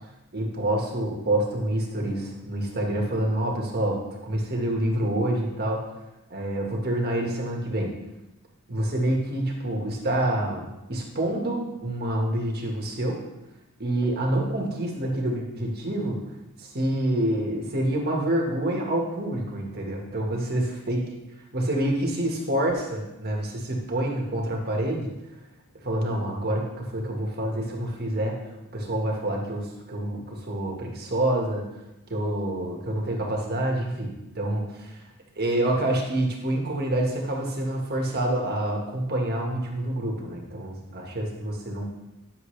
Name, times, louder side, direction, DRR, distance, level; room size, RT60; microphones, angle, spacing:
voice 1, 0.3-5.8 6.3-7.9 8.7-13.2 13.8-16.2 16.6-21.0 21.5-25.1 25.8-28.4 28.7-31.6 32.1-35.0 35.3-41.9, right 1 dB, 45° right, 0 dB, 1.7 m, -27 dB
10.0 x 7.0 x 3.3 m, 0.96 s
head